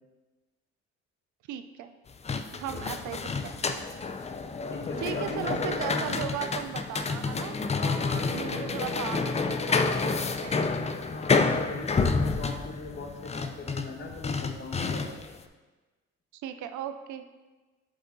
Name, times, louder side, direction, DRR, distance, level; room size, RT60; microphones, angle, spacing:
voice 1, 1.5-2.0 2.5-3.9 5.0-7.6 8.3-10.6 16.3-17.3, right 10 dB, 75° right, 9 dB, 0.5 m, -37 dB
sound 1, 2.1-15.4, left 4 dB, 20° left, 0.4 m, -29 dB
voice 2, 4.7-6.3 7.6-9.1 11.0-15.1, left 3 dB, 40° left, 2 dB, 1.2 m, -38 dB
7.5 x 3.9 x 3.9 m, 1.2 s
cardioid pair, 90°, 30 cm